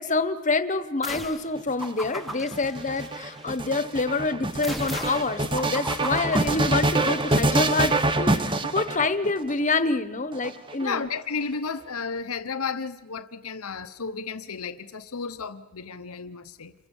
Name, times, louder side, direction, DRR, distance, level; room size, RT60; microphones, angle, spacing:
voice 1, 0.0-11.0, left 3 dB, 35° left, 12 dB, 1.1 m, -27 dB
sound 1, 1.0-1.5 1.8-3.6 4.6-7.2, left 1 dB, ahead, 1.0 m, -38 dB
sound 2, 1.6-9.5 10.3-11.2, right 2 dB, 20° right, 0.9 m, -26 dB
voice 2, 8.4-8.7 10.8-16.7, left 5 dB, 80° left, 11 dB, 0.9 m, -33 dB
28.0 x 23.0 x 7.2 m, 1.0 s
head